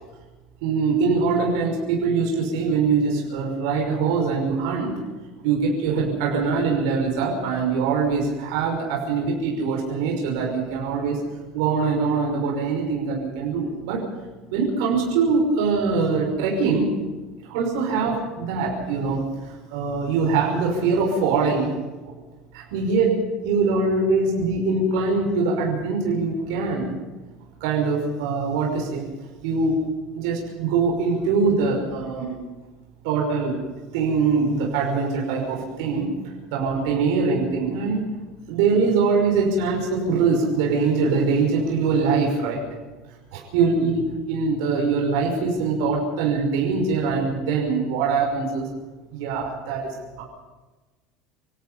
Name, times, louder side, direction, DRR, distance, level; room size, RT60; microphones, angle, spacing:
voice 1, 0.6-5.0 5.4-11.2 11.5-14.0 14.5-16.9 17.4-21.7 22.1-22.2 22.5-23.1 23.4-26.9 27.6-29.1 29.4-29.7 30.1-32.4 33.0-33.6 33.9-36.1 36.5-38.0 38.5-42.6 43.3-48.7 49.1-50.2, right 4 dB, 80° right, -1 dB, 5.9 m, -23 dB
28.0 x 17.5 x 5.7 m, 1.2 s
cardioid pair, 160°, 2 cm